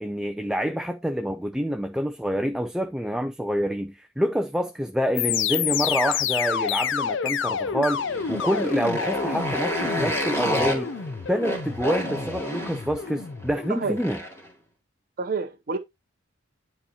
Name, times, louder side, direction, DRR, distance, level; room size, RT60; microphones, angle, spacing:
voice 1, 0.0-8.0 8.3-10.9 11.3-14.2, equal, 5° right, 0.4 m, -27 dB
sound 1, 5.1-14.0, left 7 dB, 65° left, 0.6 m, -29 dB
Motorcycle, 7.9-14.5, equal, 15° left, 2.1 m, -31 dB
voice 2, 15.2-15.8, right 4 dB, 45° right, 0.7 m, -28 dB
10.0 x 4.2 x 2.8 m
head